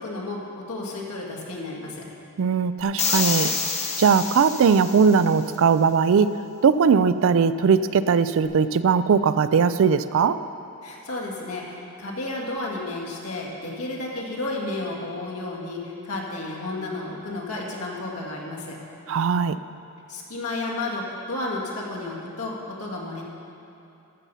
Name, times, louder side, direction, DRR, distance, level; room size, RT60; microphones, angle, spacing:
voice 1, 0.0-2.0 10.8-18.8 20.1-23.2, left 2 dB, 80° left, -2 dB, 1.9 m, -32 dB
voice 2, 2.4-3.5 4.0-6.4 6.6-10.4 19.1-19.6, right 6 dB, 60° right, 13 dB, 0.4 m, -19 dB
sound 1, 3.0-5.3, left 5 dB, 30° left, 1.0 m, -27 dB
13.5 x 6.8 x 5.5 m, 2.7 s
head